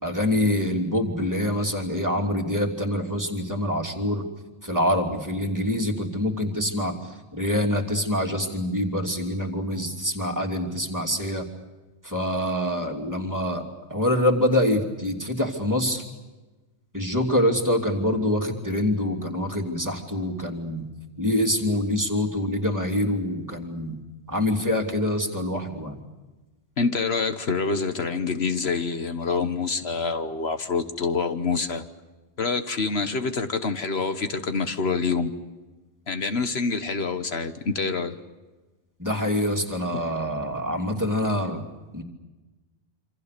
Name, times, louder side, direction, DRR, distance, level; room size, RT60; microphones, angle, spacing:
voice 1, 0.0-4.2 4.6-11.5 12.0-16.0 16.9-20.9 21.2-24.0 24.3-26.0 39.0-41.6 41.9-42.0, left 1 dB, 15° right, 2 dB, 3.0 m, -25 dB
voice 2, 26.8-31.8 32.4-35.3 36.1-38.1 39.9-40.0, left 4 dB, 70° left, 9 dB, 1.5 m, -26 dB
27.5 x 26.5 x 6.8 m, 1.2 s
omnidirectional pair, 1.1 m